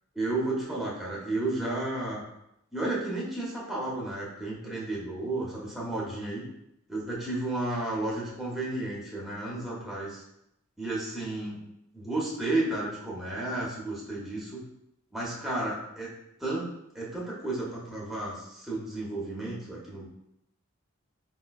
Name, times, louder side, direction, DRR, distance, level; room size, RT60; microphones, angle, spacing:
voice 1, 0.1-2.2 2.7-6.5 6.9-10.2 10.8-11.6 11.9-14.7 15.1-16.7 16.9-20.1, right 2 dB, ahead, -6 dB, 0.7 m, -32 dB
4.8 x 2.1 x 2.3 m, 0.82 s
head